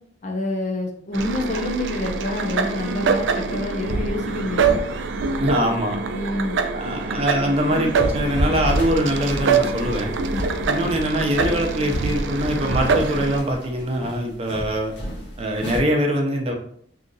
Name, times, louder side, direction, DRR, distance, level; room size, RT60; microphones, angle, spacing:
voice 1, 0.2-4.8 6.1-6.6 10.3-10.5, left 1 dB, 40° left, 1 dB, 0.6 m, -27 dB
sound 1, 1.1-13.4, right 4 dB, 85° right, 0.4 m, -25 dB
voice 2, 5.4-6.0 6.7-10.1 10.7-14.9 15.4-16.5, equal, 35° right, 1 dB, 0.6 m, -23 dB
sound 2, 8.2-15.8, equal, 70° left, 1.0 m, -32 dB
2.8 x 2.5 x 3.8 m, 0.64 s
head